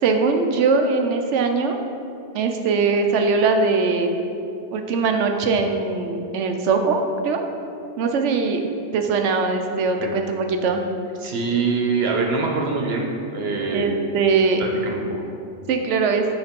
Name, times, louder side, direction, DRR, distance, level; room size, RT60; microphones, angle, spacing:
voice 1, 0.0-1.8 2.3-4.1 4.7-7.4 8.0-8.6 8.9-10.8 13.7-14.6 15.7-16.3, right 4 dB, 90° right, 5 dB, 1.0 m, -21 dB
voice 2, 11.2-13.9 14.6-15.0, right 4 dB, 65° right, 1 dB, 1.1 m, -24 dB
7.1 x 3.9 x 5.1 m, 2.6 s
omnidirectional pair, 1.2 m